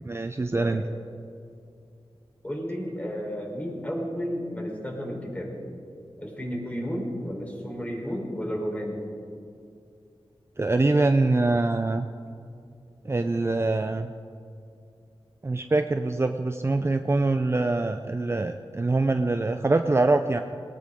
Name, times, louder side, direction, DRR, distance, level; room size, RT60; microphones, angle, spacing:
voice 1, 0.1-0.8 10.6-12.1 13.0-14.1 15.4-20.4, right 2 dB, 25° right, 7 dB, 0.5 m, -24 dB
voice 2, 2.4-5.6 6.2-9.0, equal, 15° left, -1 dB, 4.0 m, -32 dB
19.5 x 18.5 x 3.7 m, 2.4 s
wide cardioid pair, 90°, 10 cm